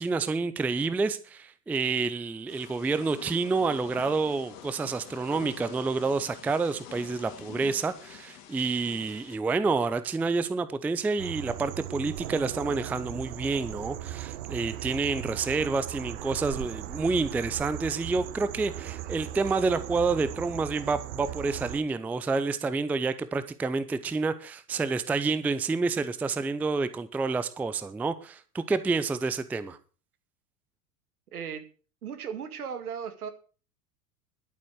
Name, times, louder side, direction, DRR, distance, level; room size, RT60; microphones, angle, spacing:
voice 1, 0.0-29.8, right 4 dB, 5° right, 0.5 m, -28 dB
Thunder / Rain, 2.5-9.4, left 10 dB, 45° left, 3.0 m, -46 dB
sound 1, 11.2-21.8, right 14 dB, 50° right, 1.1 m, -38 dB
sound 2, 11.4-21.8, right 4 dB, 25° right, 4.0 m, -51 dB
voice 2, 31.3-31.7 32.0-33.3, right 7 dB, 70° right, 2.1 m, -36 dB
11.5 x 8.5 x 6.3 m
figure-of-eight pair, 90°, 46 cm